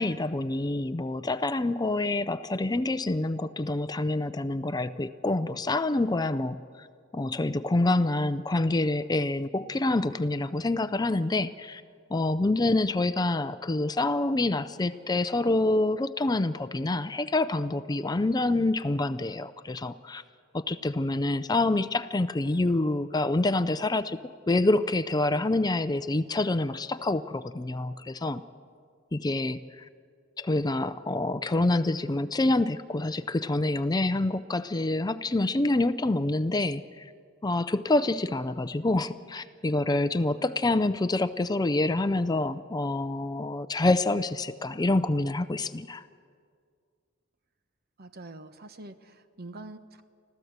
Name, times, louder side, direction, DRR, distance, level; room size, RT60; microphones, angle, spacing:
voice 1, 0.0-6.9 7.1-11.8 12.1-20.2 20.5-24.2 24.5-28.4 29.1-29.9 30.4-37.0 37.4-46.0, left 2 dB, 20° left, 12 dB, 0.5 m, -27 dB
voice 2, 48.0-50.0, right 2 dB, 50° right, 10 dB, 1.1 m, -45 dB
26.0 x 15.0 x 8.0 m, 2.1 s
head